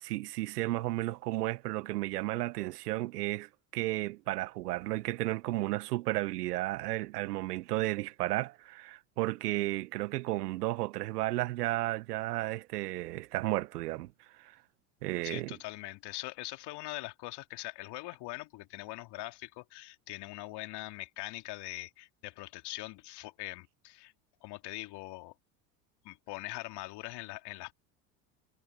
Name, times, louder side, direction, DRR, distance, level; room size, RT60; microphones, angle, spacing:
voice 1, 0.0-14.1 14.4-14.5 15.0-15.6, right 18 dB, 75° right, 1.4 m, -33 dB
voice 2, 15.2-24.1 24.4-25.3 26.0-27.7, left 19 dB, 55° left, 2.9 m, -42 dB
hypercardioid pair, 80°, 47 cm